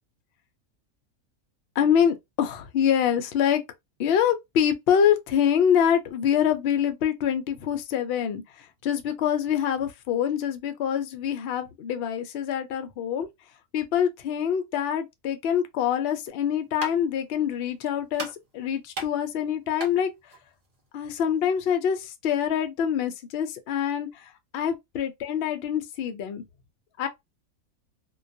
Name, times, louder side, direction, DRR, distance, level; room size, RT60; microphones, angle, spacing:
voice 1, 1.8-3.6 4.0-13.3 13.7-18.3 18.5-20.1 20.9-24.3 24.5-26.4 27.0-27.1, left 8 dB, 70° left, 0.6 m, -25 dB
sound 1, 16.3-21.6, right 2 dB, 45° right, 0.5 m, -41 dB
2.3 x 2.2 x 2.5 m
omnidirectional pair, 1.5 m